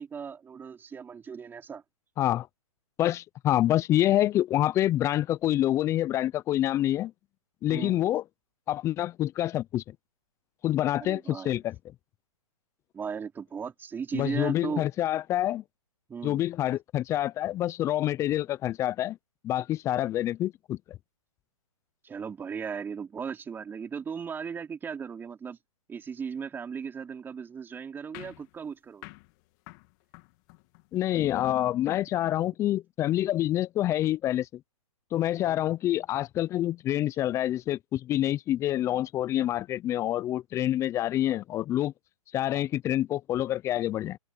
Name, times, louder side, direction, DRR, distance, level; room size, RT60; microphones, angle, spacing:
voice 1, 0.0-1.8 7.7-8.0 11.0-11.6 12.9-14.8 16.1-16.4 22.0-25.6 25.9-29.1 35.4-35.6, right 6 dB, 10° right, 4.7 m, -37 dB
voice 2, 3.0-7.1 7.6-8.2 8.7-9.9 10.6-11.7 14.1-15.6 16.2-19.2 19.4-21.0 30.9-34.5 35.1-41.9 42.3-44.2, left 13 dB, 15° left, 0.7 m, -27 dB
sound 1, 28.1-31.0, left 27 dB, 30° left, 2.8 m, -50 dB
open air
hypercardioid pair, 140°, 19 cm